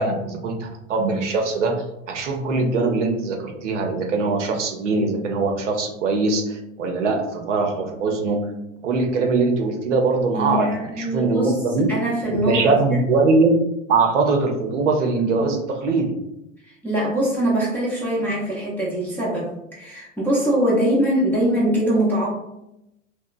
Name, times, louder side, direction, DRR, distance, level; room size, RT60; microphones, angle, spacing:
voice 1, 0.0-8.5 8.8-11.9 12.3-13.6 13.9-16.2, right 3 dB, 65° right, 3 dB, 0.6 m, -22 dB
voice 2, 10.3-11.5 11.9-13.0 16.8-22.3, right 1 dB, 5° left, -7 dB, 0.5 m, -22 dB
2.8 x 2.1 x 2.4 m, 0.85 s
figure-of-eight pair, 90°, 40 cm